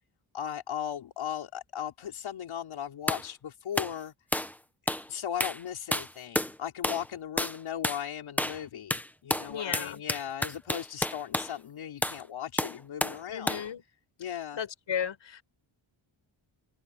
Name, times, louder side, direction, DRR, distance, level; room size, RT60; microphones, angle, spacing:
voice 1, 0.3-4.1 5.1-13.6 14.2-14.6, left 9 dB, 85° left, 3.5 m, -37 dB
sound 1, 3.1-3.3 3.8-4.0 4.3-4.6 4.9-5.1 5.4-5.6 5.9-6.5 6.8-7.1 7.4-7.6 7.8-8.0 8.4-8.6 8.9-11.5 12.0-12.2 12.6-13.2 13.5-13.7, left 1 dB, 5° left, 1.1 m, -30 dB
voice 2, 9.5-10.0 13.3-13.8 14.6-15.4, left 8 dB, 70° left, 6.8 m, -34 dB
open air
wide cardioid pair, 140°, 47 cm